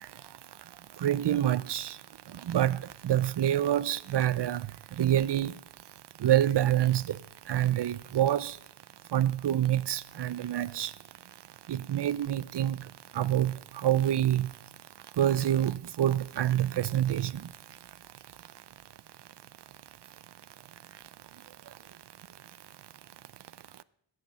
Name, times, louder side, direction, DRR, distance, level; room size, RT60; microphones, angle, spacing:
voice 1, 1.0-1.9 2.5-2.8 3.0-4.6 5.0-5.5 6.2-7.0 7.5-8.5 9.1-10.9 11.7-12.8 13.2-13.5 13.8-14.5 15.2-17.3, right 11 dB, 55° right, 0.6 m, -26 dB
14.5 x 9.6 x 6.2 m
wide cardioid pair, 140°, 49 cm